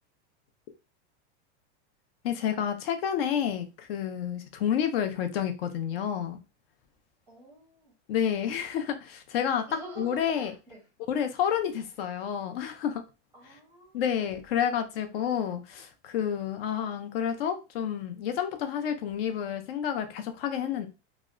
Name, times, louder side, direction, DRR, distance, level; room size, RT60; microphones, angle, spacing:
voice 1, 2.2-6.4 8.1-9.7 10.0-10.5 11.1-13.0 13.9-20.9, left 9 dB, 60° left, 0.5 m, -29 dB
voice 2, 7.3-7.9 9.7-10.8 13.3-14.3, right 2 dB, 5° right, 0.6 m, -47 dB
2.7 x 2.1 x 2.4 m
supercardioid pair, 175°, 34 cm